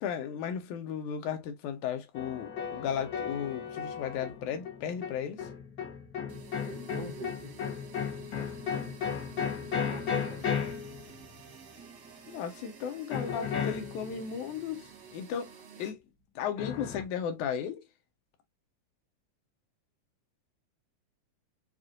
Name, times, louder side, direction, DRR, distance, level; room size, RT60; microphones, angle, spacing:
voice 1, 0.0-5.5 12.3-16.0 16.4-17.9, left 8 dB, 85° left, 2.3 m, -35 dB
sound 1, 2.1-11.7 13.1-14.4 16.6-17.0, left 7 dB, 70° left, 0.9 m, -35 dB
sound 2, 6.3-15.9, right 6 dB, 60° right, 1.1 m, -51 dB
voice 2, 6.6-7.6 9.7-10.5, right 2 dB, 90° right, 0.8 m, -43 dB
6.0 x 2.5 x 2.4 m
omnidirectional pair, 3.4 m